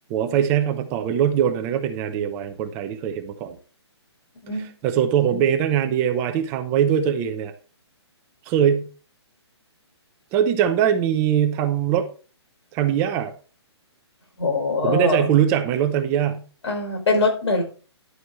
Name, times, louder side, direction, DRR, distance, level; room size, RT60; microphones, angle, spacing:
voice 1, 0.1-3.6 4.8-7.5 8.4-8.9 10.3-12.1 12.7-13.3 14.8-16.5, right 9 dB, 15° right, 7 dB, 0.7 m, -21 dB
voice 2, 14.4-15.3 16.6-17.6, left 2 dB, 75° left, 3 dB, 4.6 m, -22 dB
11.0 x 8.0 x 3.1 m, 0.38 s
hypercardioid pair, 165°, 15 cm